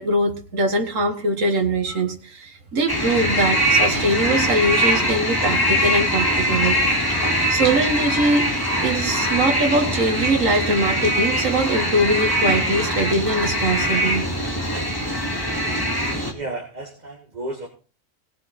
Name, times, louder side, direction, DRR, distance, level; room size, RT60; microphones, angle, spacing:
voice 1, 0.0-6.8 7.3-8.5 8.8-14.3, right 1 dB, 75° right, 3 dB, 2.0 m, -22 dB
sound 1, 2.9-16.3, equal, 15° left, 2.7 m, -22 dB
voice 2, 16.0-17.7, right 2 dB, 35° right, 0 dB, 2.2 m, -33 dB
18.0 x 7.7 x 4.3 m, 0.37 s
omnidirectional pair, 1.4 m